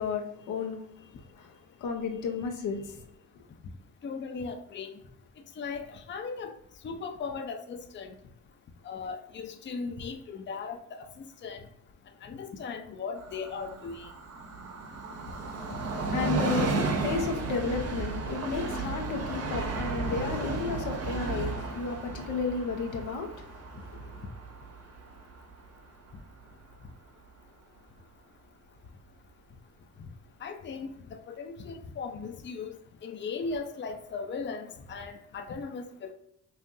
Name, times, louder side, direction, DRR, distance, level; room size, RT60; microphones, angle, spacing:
voice 1, 0.0-3.0 16.1-24.2, left 5 dB, 90° left, 0.9 m, -33 dB
voice 2, 4.0-4.9 5.6-6.5 6.8-8.1 8.8-11.6 12.2-14.1 18.8-18.9 21.4-21.5 30.4-30.9 31.3-32.8 33.0-36.1, left 5 dB, 40° left, 0.6 m, -37 dB
Train, 13.2-26.5 26.8-26.9, right 3 dB, 55° right, 1.0 m, -34 dB
5.5 x 2.5 x 2.7 m
cardioid pair, 90°, 30 cm